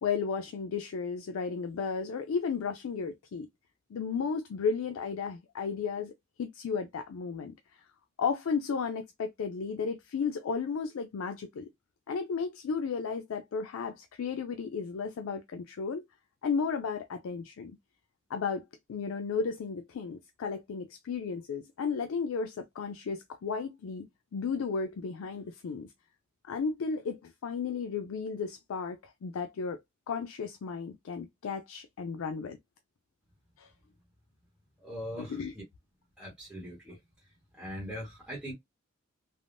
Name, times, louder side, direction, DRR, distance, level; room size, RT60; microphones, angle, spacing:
voice 1, 0.0-3.5 3.9-6.1 6.4-7.8 8.2-11.7 12.1-16.0 16.4-17.7 18.3-24.1 24.3-25.9 26.5-29.8 30.1-32.6 33.6-33.7 35.2-35.5, left 5 dB, 85° left, 0.4 m, -34 dB
voice 2, 34.8-35.6 36.2-37.0 37.5-38.5, equal, 5° right, 1.0 m, -41 dB
3.4 x 2.0 x 2.5 m
head